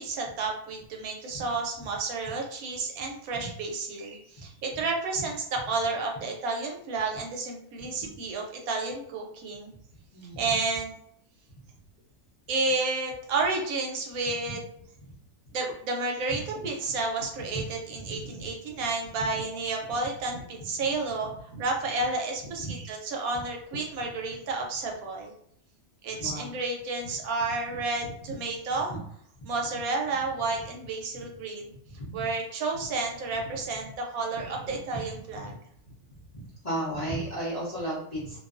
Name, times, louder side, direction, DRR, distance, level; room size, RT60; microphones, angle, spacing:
voice 1, 0.0-9.7 10.4-10.9 12.5-14.7 15.5-25.3 26.0-28.9 29.4-31.7 32.1-35.6, right 3 dB, 75° right, 1 dB, 1.0 m, -31 dB
voice 2, 10.1-10.5 17.5-17.6 18.1-18.2 22.6-22.7 26.2-26.5 28.9-29.0 32.0-32.3 36.6-38.4, right 1 dB, 45° left, -9 dB, 0.5 m, -33 dB
2.5 x 2.3 x 2.4 m, 0.71 s
omnidirectional pair, 1.6 m